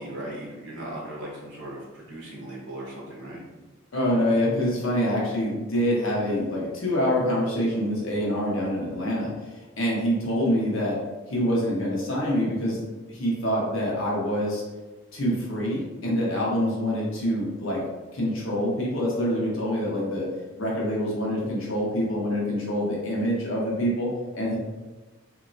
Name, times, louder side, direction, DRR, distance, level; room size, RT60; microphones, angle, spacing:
voice 1, 0.0-3.4, right 1 dB, 65° right, -5 dB, 1.0 m, -38 dB
voice 2, 3.9-9.3 9.8-11.0 11.3-12.8 13.1-14.6 15.1-17.8 18.1-20.3 20.6-24.6, equal, 80° left, -4 dB, 0.9 m, -26 dB
3.0 x 2.8 x 2.6 m, 1.2 s
head